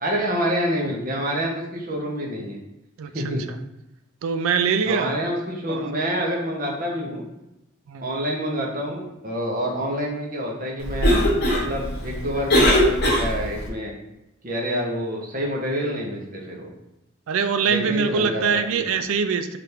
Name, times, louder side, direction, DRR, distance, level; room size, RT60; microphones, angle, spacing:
voice 1, 0.0-2.6 3.1-3.4 4.8-7.2 8.0-11.2 11.5-13.9 14.4-16.7 17.7-18.9, equal, 40° right, -1 dB, 0.7 m, -27 dB
voice 2, 4.2-5.2 5.7-5.9 7.9-8.1 17.3-19.6, right 5 dB, 75° right, 9 dB, 0.3 m, -23 dB
Cough, 10.8-13.7, equal, 50° left, 0.9 m, -21 dB
3.3 x 2.5 x 4.3 m, 0.91 s
head